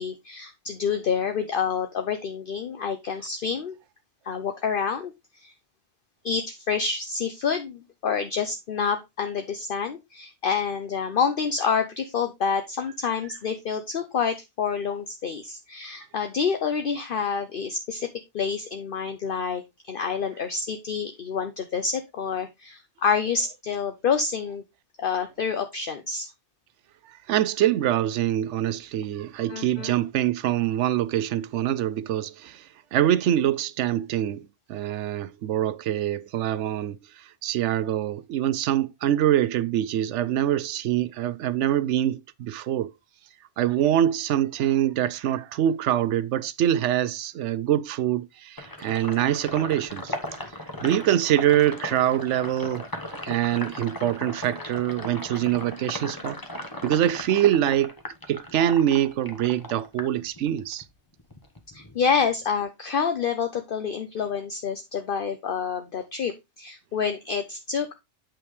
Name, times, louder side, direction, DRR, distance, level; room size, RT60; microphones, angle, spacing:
voice 1, 0.0-3.7 4.2-5.1 5.4-5.5 6.2-18.1 18.3-19.6 19.9-24.6 25.0-26.3 29.5-30.0 61.7-67.9, left 6 dB, 55° left, 0.9 m, -28 dB
voice 2, 27.3-42.9 43.6-50.2 50.8-56.4 56.8-58.0 58.3-60.8, right 11 dB, 85° right, 0.9 m, -24 dB
Sink (filling or washing), 48.6-60.8 61.2-62.6, left 1 dB, 20° left, 1.1 m, -37 dB
8.6 x 5.8 x 3.2 m
omnidirectional pair, 1.2 m